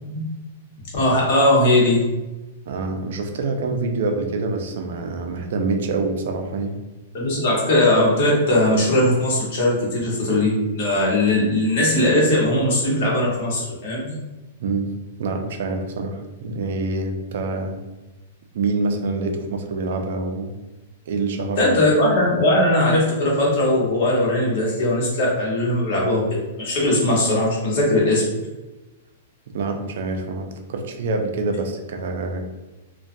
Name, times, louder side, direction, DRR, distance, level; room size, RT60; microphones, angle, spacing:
voice 1, 0.9-2.0 7.1-14.1 21.6-26.2 26.6-28.2, left 1 dB, 50° left, -4 dB, 1.0 m, -19 dB
voice 2, 2.7-6.7 14.6-14.9 15.2-17.8 18.5-20.5 21.1-21.6 29.5-32.4, right 3 dB, 65° right, 4 dB, 0.4 m, -26 dB
2.3 x 2.2 x 2.6 m, 1.1 s
hypercardioid pair, 160°, 0 cm